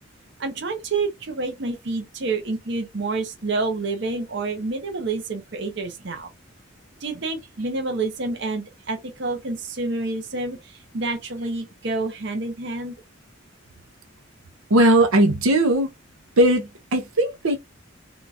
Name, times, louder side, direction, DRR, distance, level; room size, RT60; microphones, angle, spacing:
voice 1, 0.4-6.3 7.0-13.0, right 3 dB, 55° right, 0.8 m, -28 dB
voice 2, 14.7-15.9 16.4-17.6, right 1 dB, 90° right, 0.7 m, -18 dB
3.6 x 2.4 x 2.6 m
head